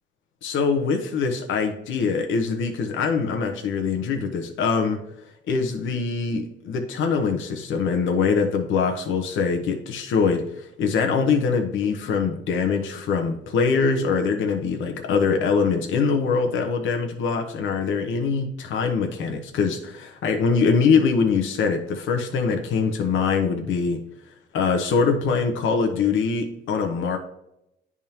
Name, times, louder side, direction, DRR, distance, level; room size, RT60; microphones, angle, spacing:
voice 1, 0.4-5.0 5.5-24.0 24.5-27.2, left 5 dB, 80° left, 4 dB, 0.9 m, -23 dB
10.5 x 3.6 x 2.9 m, 0.84 s
cardioid pair, 90°, 20 cm